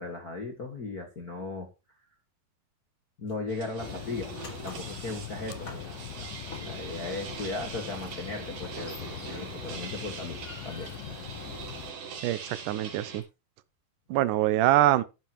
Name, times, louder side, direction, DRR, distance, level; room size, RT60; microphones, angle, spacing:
voice 1, 0.0-1.7 3.2-4.3 4.6-6.3 6.6-11.3 11.8-11.9 12.4-12.5, left 3 dB, 45° left, 1.2 m, -37 dB
sound 1, 3.3-3.6 3.9-7.0 8.6-9.8 10.1-12.1, left 4 dB, 30° left, 1.7 m, -48 dB
sound 2, 3.5-13.2, right 6 dB, 60° right, 4.0 m, -42 dB
sound 3, 3.8-11.9, left 11 dB, 70° left, 2.3 m, -42 dB
voice 2, 12.2-13.2 14.1-15.0, right 14 dB, 90° right, 1.8 m, -24 dB
12.5 x 10.5 x 3.0 m
omnidirectional pair, 4.6 m